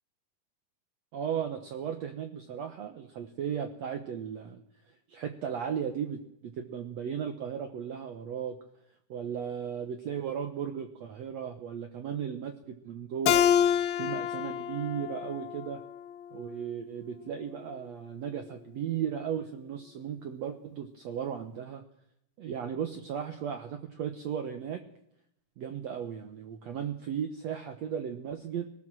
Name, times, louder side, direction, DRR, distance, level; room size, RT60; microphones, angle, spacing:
voice 1, 1.1-4.6 5.1-8.6 9.1-13.5 14.0-15.8 16.3-21.8 22.4-24.8 25.6-28.7, right 8 dB, 65° right, 7 dB, 1.7 m, -36 dB
Keyboard (musical), 13.3-16.5, left 9 dB, 75° left, 1.6 m, -28 dB
20.0 x 18.5 x 7.6 m, 0.78 s
omnidirectional pair, 4.3 m